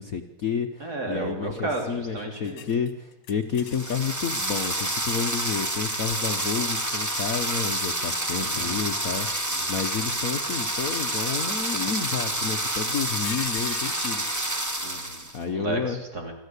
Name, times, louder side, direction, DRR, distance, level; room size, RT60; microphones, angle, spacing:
voice 1, 0.0-14.2 15.3-16.0, left 6 dB, 50° left, 6 dB, 1.2 m, -30 dB
voice 2, 0.8-2.7 8.3-8.8 9.5-9.7 14.8-16.3, right 2 dB, 45° right, 2 dB, 3.8 m, -33 dB
sound 1, 2.4-4.2 4.8-4.9 6.9-7.5 8.4-9.4 10.1-10.8 12.4-12.5 12.9-14.3, left 8 dB, 80° left, 2.1 m, -42 dB
sound 2, 3.6-15.4, right 1 dB, 15° right, 0.7 m, -28 dB
24.5 x 14.0 x 8.2 m, 0.97 s
omnidirectional pair, 2.3 m